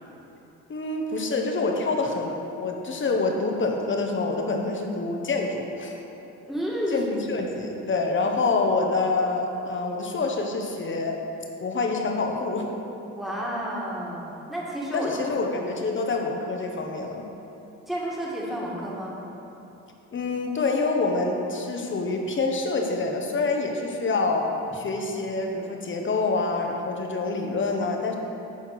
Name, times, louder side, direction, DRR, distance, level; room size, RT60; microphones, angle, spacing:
voice 1, 0.7-6.0 6.9-11.2 11.6-12.7 14.9-17.3 20.1-24.5 24.7-28.2, left 3 dB, 40° left, 2 dB, 1.2 m, -26 dB
voice 2, 6.5-7.0 13.2-15.4 17.9-19.2, equal, ahead, -5 dB, 2.0 m, -31 dB
11.0 x 4.4 x 5.8 m, 2.9 s
cardioid pair, 100°, 31 cm